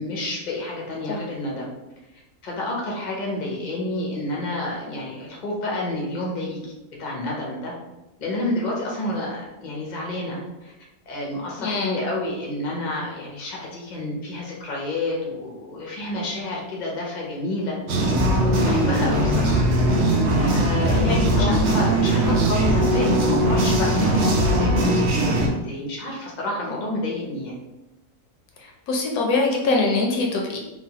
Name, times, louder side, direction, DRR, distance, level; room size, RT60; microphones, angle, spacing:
voice 1, 0.0-1.7 2.4-6.6 7.0-7.7 8.2-10.7 11.1-17.8 18.4-19.6 20.4-27.6, left 1 dB, 50° left, -3 dB, 0.5 m, -29 dB
voice 2, 11.6-12.1 20.9-21.5 28.6-30.6, left 3 dB, 75° left, 0 dB, 1.0 m, -24 dB
sound 1, 17.9-25.5, right 1 dB, 70° right, 0.6 m, -20 dB
3.1 x 2.2 x 2.8 m, 1.0 s
omnidirectional pair, 1.7 m